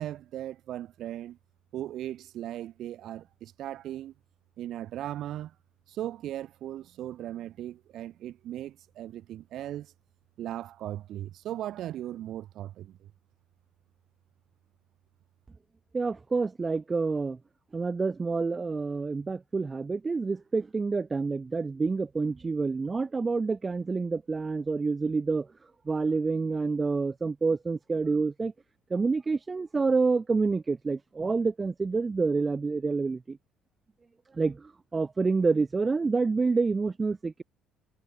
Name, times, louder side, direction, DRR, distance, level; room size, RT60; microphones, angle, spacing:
voice 1, 0.0-1.4 1.7-4.1 4.6-5.5 5.9-9.9 10.4-13.1, right 12 dB, 55° right, 3.7 m, -38 dB
voice 2, 15.9-17.4 17.7-25.5 25.9-28.5 28.9-33.4 34.4-37.4, right 4 dB, 20° right, 0.7 m, -28 dB
cardioid pair, 155°, 0 cm